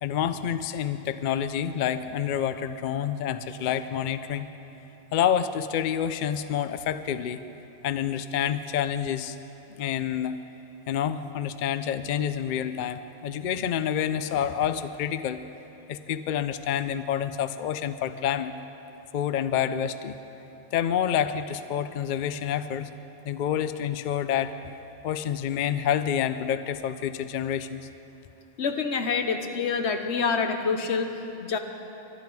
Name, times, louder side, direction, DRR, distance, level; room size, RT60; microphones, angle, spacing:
voice 1, 0.0-4.5 5.1-7.4 7.8-9.4 9.8-10.4 10.9-15.4 15.9-18.5 19.1-20.2 20.7-22.9 23.2-24.8 25.0-27.8, left 9 dB, 55° left, 12 dB, 0.6 m, -28 dB
voice 2, 28.6-31.6, left 5 dB, 85° left, 6 dB, 1.2 m, -27 dB
22.5 x 11.5 x 4.7 m, 3.0 s
omnidirectional pair, 1.1 m